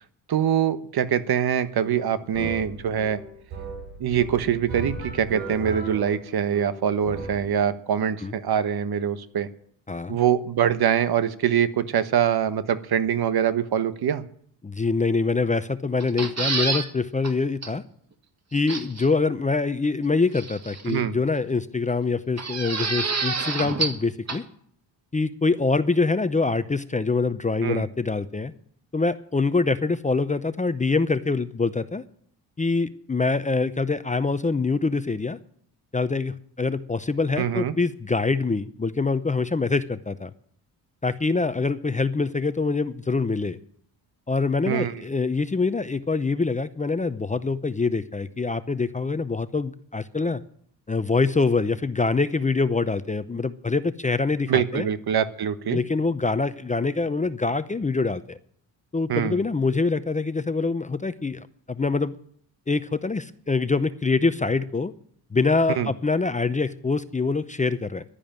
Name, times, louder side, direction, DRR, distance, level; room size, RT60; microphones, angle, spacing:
voice 1, 0.3-3.2 4.0-9.5 10.1-14.2 20.9-21.2 27.6-27.8 37.4-37.7 44.7-45.0 54.5-55.8 59.1-59.4 65.7-65.9, right 9 dB, 55° right, 12 dB, 1.2 m, -24 dB
sound 1, 1.6-7.5, right 3 dB, 80° right, 7.8 m, -36 dB
voice 2, 14.6-17.8 18.5-24.4 25.1-28.5 28.9-32.0 32.6-35.4 35.9-40.3 41.0-43.6 44.3-50.4 50.9-54.9 55.7-58.4 58.9-62.1 62.7-64.9 65.3-68.0, left 3 dB, 15° left, 13 dB, 0.7 m, -25 dB
sound 2, 16.0-16.9 17.2-17.3 17.6-17.7 18.7-19.1 20.4-21.0 22.4-24.0 24.3-24.4, right 4 dB, 35° right, 2.0 m, -28 dB
11.5 x 10.5 x 8.9 m, 0.63 s
cardioid pair, 85°, 44 cm